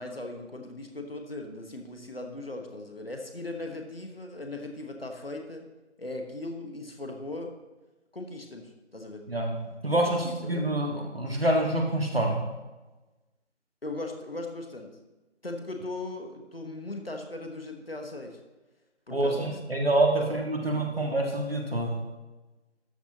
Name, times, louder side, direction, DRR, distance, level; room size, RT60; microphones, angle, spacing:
voice 1, 0.0-5.7 6.0-7.5 8.1-9.2 9.9-10.6 13.8-14.9 15.4-18.4 19.1-19.6 20.2-20.4 20.7-21.2, left 2 dB, 55° left, 3 dB, 1.4 m, -38 dB
voice 2, 9.3-12.4 19.1-21.9, right 1 dB, 55° right, 1 dB, 1.8 m, -26 dB
12.5 x 6.8 x 2.9 m, 1.1 s
figure-of-eight pair, 170°, 36 cm